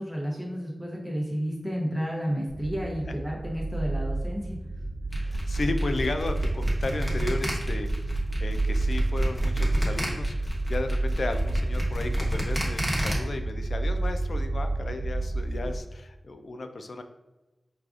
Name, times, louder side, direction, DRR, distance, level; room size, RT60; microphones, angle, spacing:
voice 1, 0.0-4.6, equal, 10° right, -3 dB, 0.7 m, -31 dB
sound 1, 2.5-15.8, right 2 dB, 40° right, 0.8 m, -30 dB
sound 2, 5.1-13.1, equal, 15° left, 1.1 m, -30 dB
voice 2, 5.2-17.0, left 2 dB, 70° left, 7 dB, 0.3 m, -34 dB
4.7 x 2.4 x 2.4 m, 1.1 s
cardioid pair, 55°, 0 cm